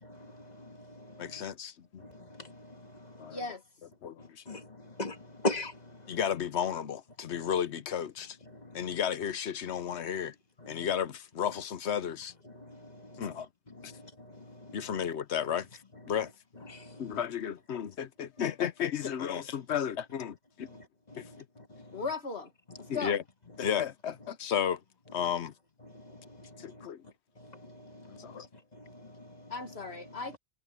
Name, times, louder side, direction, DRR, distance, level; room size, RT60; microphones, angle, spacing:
voice 1, 0.1-1.4 2.0-2.7 3.0-3.3 4.5-4.7 5.0-5.8 10.8-10.9 12.6-13.2 13.8-14.0 14.3-14.8 16.7-17.0 21.7-21.9 25.9-26.9 27.4-28.5 28.8-29.3, left 2 dB, 40° left, 1.9 m, -40 dB
voice 2, 1.2-2.0 3.2-3.4 4.0-4.4 6.1-8.4 8.7-10.3 10.7-12.3 13.2-13.5 13.8-13.9 14.7-15.7 16.1-16.3 17.0-20.7 21.2-21.4 22.9-23.2 23.6-24.8 25.1-25.5 26.6-27.0 28.1-28.5, left 8 dB, 90° left, 1.1 m, -33 dB
voice 3, 3.3-3.6 21.9-22.5 22.8-23.1 29.5-30.4, left 4 dB, 70° left, 2.1 m, -37 dB
omnidirectional pair, 1.1 m